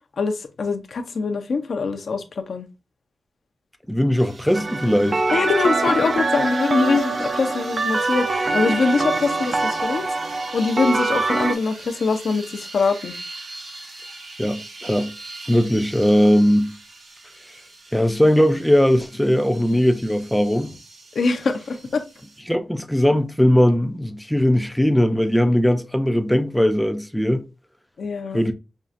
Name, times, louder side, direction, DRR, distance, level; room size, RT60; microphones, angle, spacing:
voice 1, 0.2-2.7 5.3-10.0 10.5-13.1 21.1-22.0 28.0-28.4, left 4 dB, 70° left, 0.6 m, -23 dB
voice 2, 3.9-5.2 14.4-15.1 15.5-16.7 17.9-20.7 22.5-27.4 28.3-28.5, equal, 5° left, 0.5 m, -19 dB
sound 1, 4.2-22.4, right 2 dB, 85° right, 1.2 m, -41 dB
sound 2, 4.5-11.5, right 3 dB, 50° right, 0.5 m, -24 dB
5.3 x 2.4 x 2.5 m
wide cardioid pair, 85°, 0 cm